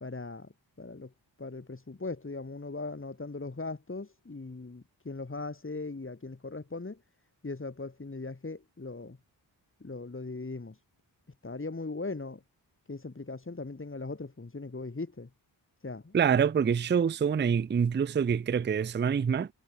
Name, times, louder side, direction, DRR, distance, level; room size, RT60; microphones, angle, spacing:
voice 1, 0.0-0.5 0.8-1.1 1.4-7.0 7.4-9.2 9.8-10.8 11.4-12.4 12.9-15.3 15.8-16.2, left 3 dB, 25° left, 1.9 m, -39 dB
voice 2, 16.1-19.5, right 7 dB, 25° right, 0.4 m, -26 dB
cardioid pair, 45°, 46 cm